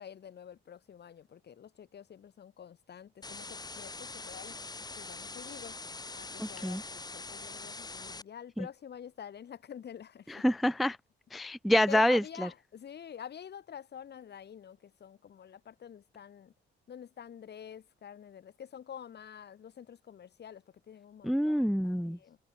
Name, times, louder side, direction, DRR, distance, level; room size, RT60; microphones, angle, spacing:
voice 1, 0.0-4.6 5.0-5.8 6.1-10.5 11.9-16.5 16.9-22.4, left 8 dB, 55° left, 6.1 m, -47 dB
sound 1, 3.2-8.2, left 3 dB, 20° left, 2.2 m, -43 dB
voice 2, 6.4-6.8 10.3-11.0 11.3-12.2 21.2-22.2, equal, ahead, 0.4 m, -27 dB
cardioid pair, 90°, 20 cm